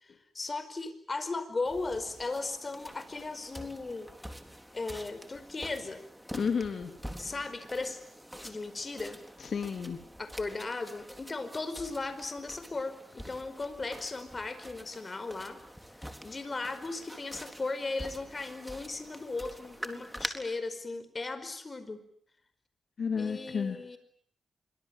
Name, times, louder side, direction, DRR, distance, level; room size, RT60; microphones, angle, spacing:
voice 1, 0.0-4.1 4.7-6.0 7.2-8.0 8.4-9.2 10.2-15.6 16.2-22.0 23.2-24.0, left 3 dB, 35° left, 12 dB, 5.0 m, -37 dB
sound 1, 1.7-20.3, equal, ahead, 3.9 m, -46 dB
voice 2, 6.3-7.0 9.4-10.0 23.0-23.8, left 6 dB, 60° left, 6 dB, 2.8 m, -32 dB
26.5 x 24.0 x 9.1 m, 0.64 s
cardioid pair, 75°, 0 cm